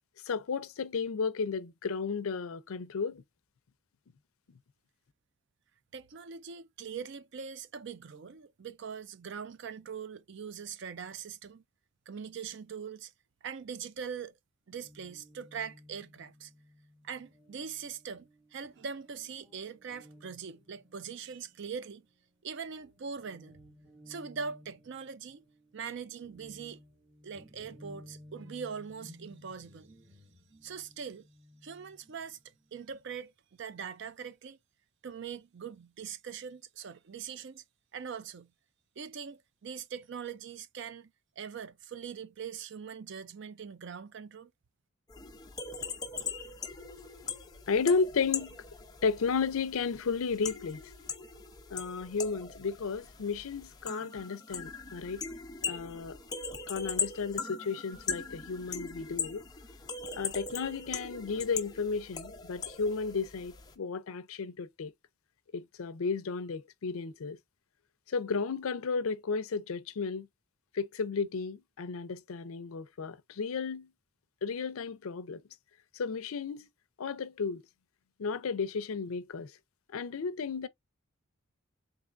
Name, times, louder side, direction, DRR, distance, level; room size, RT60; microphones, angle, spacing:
voice 1, 0.3-3.2 47.7-48.6 49.0-50.8 51.7-55.2 55.6-56.2 56.7-59.4 60.2-64.9 65.5-67.4 68.1-70.3 70.7-73.9 74.4-75.4 75.9-76.7 77.0-77.6 78.2-79.5 79.9-80.7, left 5 dB, 75° left, 0.5 m, -33 dB
voice 2, 5.9-11.6 12.1-13.1 13.4-14.3 14.7-16.5 17.0-22.1 22.4-23.6 24.1-25.4 25.7-26.8 27.2-29.9 30.6-31.3 31.6-34.6 35.0-37.6 37.9-38.5 39.0-41.1 41.4-44.5, right 6 dB, 55° right, 0.4 m, -42 dB
Guitar, 14.7-22.4 22.7-33.1, left 1 dB, 25° right, 1.4 m, -57 dB
sound 1, 45.1-63.7, left 5 dB, 20° left, 0.6 m, -40 dB
3.9 x 3.4 x 2.5 m
head